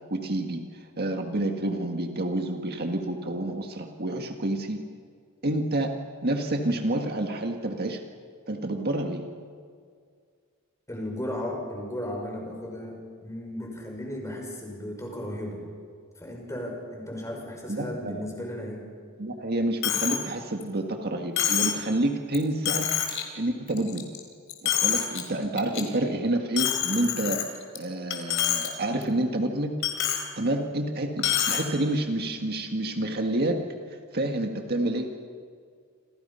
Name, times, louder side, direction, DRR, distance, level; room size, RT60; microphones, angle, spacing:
voice 1, 0.1-4.8 5.4-5.9 6.2-8.0 8.5-9.2 17.7-18.2 19.2-22.9 23.3-24.1 24.6-27.4 27.8-29.8 30.4-33.6 34.1-35.1, right 1 dB, 45° right, 3 dB, 1.8 m, -28 dB
voice 2, 10.9-15.6 16.1-18.8, left 1 dB, 15° left, 0 dB, 6.1 m, -35 dB
Coin (dropping), 19.8-20.2 20.6-20.7 21.4-21.8 22.3-22.4 22.7-23.2 23.7-24.2 24.5-25.2 25.6-25.8 26.6-27.8 28.1-28.7 29.0-29.1 29.8-30.2 31.2-31.6, left 9 dB, 60° left, 3.8 m, -26 dB
28.0 x 28.0 x 5.7 m, 2.1 s
head